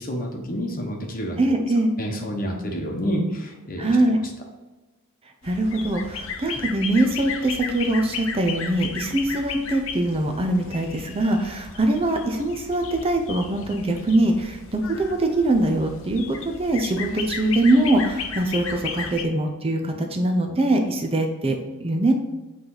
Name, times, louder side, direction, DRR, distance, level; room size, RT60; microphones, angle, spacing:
voice 1, 0.0-1.6 2.0-4.0, equal, 40° left, 2 dB, 1.0 m, -28 dB
voice 2, 1.4-1.9 3.8-4.2 5.4-22.1, right 1 dB, 25° right, 4 dB, 0.6 m, -22 dB
sound 1, 5.4-19.2, left 5 dB, 65° left, 0.7 m, -35 dB
8.5 x 3.3 x 3.9 m, 1.1 s
head